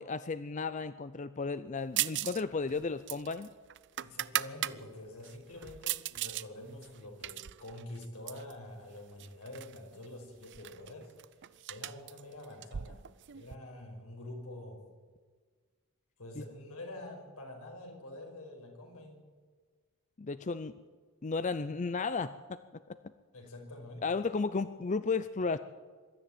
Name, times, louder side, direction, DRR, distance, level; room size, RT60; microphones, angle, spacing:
voice 1, 0.0-3.5 16.4-16.5 20.2-20.8 21.2-23.0 24.0-25.6, left 4 dB, 35° left, 13 dB, 0.5 m, -34 dB
sound 1, 2.0-2.4 2.7-4.8 5.2-6.5 6.8-8.5 9.2-9.8 10.0-10.1 10.4-13.5, right 14 dB, 50° right, 0.5 m, -37 dB
voice 2, 4.0-11.2 11.5-13.1 13.3-14.8 16.2-19.3 23.3-24.2, left 1 dB, 80° left, 2 dB, 5.4 m, -47 dB
22.0 x 13.5 x 8.9 m, 1.5 s
head